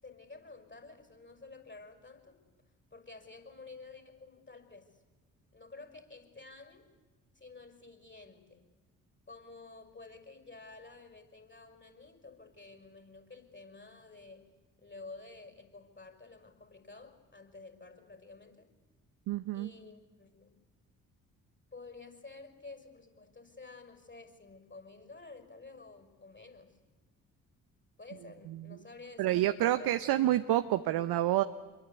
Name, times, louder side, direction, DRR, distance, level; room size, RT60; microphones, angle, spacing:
voice 1, 0.0-2.4 2.9-5.0 5.5-6.9 7.3-8.6 9.3-14.5 14.8-18.7 19.5-20.5 21.7-26.8 28.0-30.1, left 3 dB, 25° left, 7 dB, 5.8 m, -51 dB
voice 2, 19.3-19.7 29.2-31.4, right 14 dB, 60° right, 10 dB, 0.9 m, -28 dB
27.0 x 23.0 x 8.4 m, 1.3 s
hypercardioid pair, 40°, 41 cm